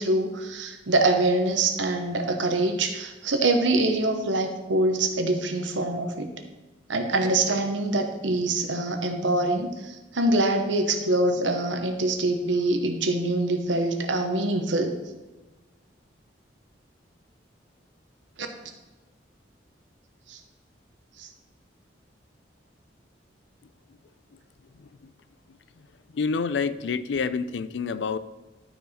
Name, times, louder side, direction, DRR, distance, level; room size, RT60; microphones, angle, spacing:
voice 1, 0.0-6.3 6.9-14.9 18.4-18.5 20.3-20.4 21.2-21.3, right 2 dB, 90° right, 5 dB, 1.1 m, -24 dB
voice 2, 24.8-25.1 26.1-28.2, left 5 dB, 70° left, 14 dB, 0.4 m, -28 dB
12.0 x 4.8 x 4.3 m, 1.1 s
head